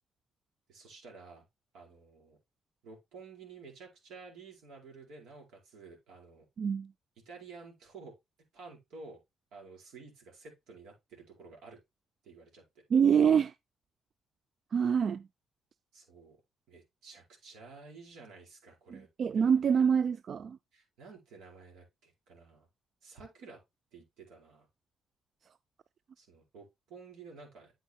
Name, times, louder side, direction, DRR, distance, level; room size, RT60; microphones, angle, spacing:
voice 1, 0.7-1.4 1.7-2.4 2.8-6.4 7.2-8.1 8.5-9.2 9.5-11.8 12.2-12.6 15.9-16.4 16.7-19.1 19.3-19.6 20.7-22.7 23.0-23.6 23.9-24.7 26.2-27.7, right 4 dB, 85° right, 4.8 m, -52 dB
voice 2, 6.6-6.9 12.9-13.5 14.7-15.3 18.9-20.6, right 7 dB, 55° right, 0.4 m, -26 dB
9.1 x 8.9 x 2.3 m
cardioid pair, 90°, 0 cm